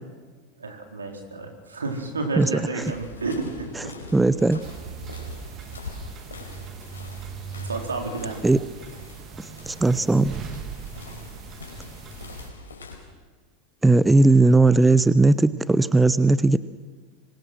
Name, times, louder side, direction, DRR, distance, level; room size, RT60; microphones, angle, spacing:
voice 1, 0.6-3.7 7.6-8.4, right 3 dB, 80° right, 3 dB, 4.5 m, -31 dB
sound 1, 2.8-13.0, left 3 dB, 75° left, 5.1 m, -42 dB
voice 2, 3.7-4.6 8.4-8.6 9.4-10.3 13.8-16.6, right 2 dB, 10° right, 16 dB, 0.7 m, -18 dB
sound 2, 4.6-12.5, right 6 dB, 30° right, 2.5 m, -39 dB
26.0 x 23.5 x 6.3 m, 1.4 s
figure-of-eight pair, 85°, 0 cm